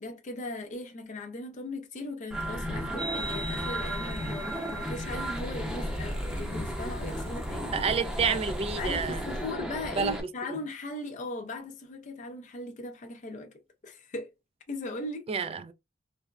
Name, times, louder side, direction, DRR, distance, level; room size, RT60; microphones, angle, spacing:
voice 1, 0.0-7.7 8.8-13.5 13.8-14.3 14.7-15.5, left 2 dB, 40° left, 0.5 m, -38 dB
sound 1, 2.3-10.2, equal, 5° right, 0.7 m, -34 dB
sound 2, 3.0-9.5, right 2 dB, 60° right, 0.9 m, -43 dB
voice 2, 7.7-9.2 10.0-10.2 15.3-15.7, right 5 dB, 30° right, 0.3 m, -29 dB
3.2 x 2.0 x 2.3 m
head